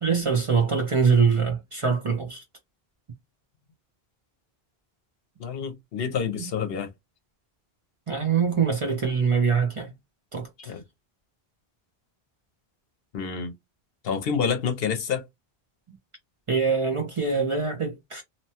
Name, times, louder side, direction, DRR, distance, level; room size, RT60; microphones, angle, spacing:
voice 1, 0.0-2.4 8.1-9.9 10.3-10.7 15.9-16.0 16.5-18.2, right 5 dB, 40° right, 0.6 m, -24 dB
voice 2, 5.4-6.9 10.7-10.8 13.1-13.5 14.0-15.3, left 6 dB, 70° left, 0.9 m, -28 dB
2.8 x 2.2 x 2.8 m
omnidirectional pair, 1.1 m